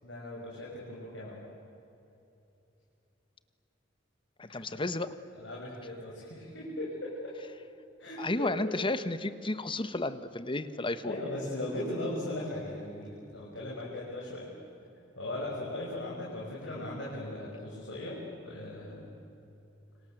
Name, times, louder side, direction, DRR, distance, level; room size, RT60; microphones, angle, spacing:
voice 1, 0.0-1.4 4.4-4.8 5.4-7.4 8.0-8.7 11.0-14.5 15.2-19.1, left 1 dB, 70° left, -5 dB, 6.7 m, -38 dB
voice 2, 4.4-5.1 8.2-11.1, left 2 dB, 25° left, 12 dB, 1.2 m, -32 dB
29.0 x 26.0 x 7.9 m, 2.9 s
head